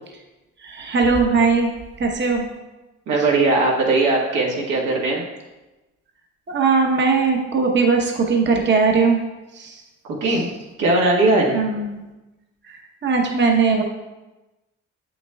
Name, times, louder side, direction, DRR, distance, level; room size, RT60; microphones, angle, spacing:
voice 1, 0.6-1.7 2.0-2.4 6.5-9.2 9.6-9.7 11.5-12.0 13.0-13.8, right 4 dB, 35° right, 1 dB, 0.9 m, -19 dB
voice 2, 3.1-5.2 10.1-10.5 10.8-11.6, right 2 dB, 85° right, -3 dB, 1.6 m, -19 dB
7.7 x 6.5 x 2.3 m, 1.1 s
cardioid pair, 90°, 30 cm